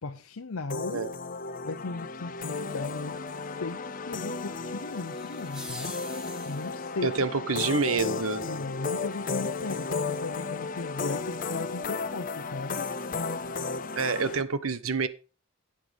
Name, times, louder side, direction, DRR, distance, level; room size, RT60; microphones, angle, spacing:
voice 1, 0.0-1.0 1.6-6.0 6.4-7.1 8.4-12.9, left 3 dB, 80° left, 0.8 m, -37 dB
sound 1, 0.7-14.4, left 4 dB, 40° left, 0.6 m, -34 dB
sound 2, 4.8-7.0, left 1 dB, 5° right, 1.6 m, -44 dB
voice 2, 7.0-8.5 13.9-15.1, right 4 dB, 80° right, 1.0 m, -27 dB
11.5 x 8.6 x 3.5 m
head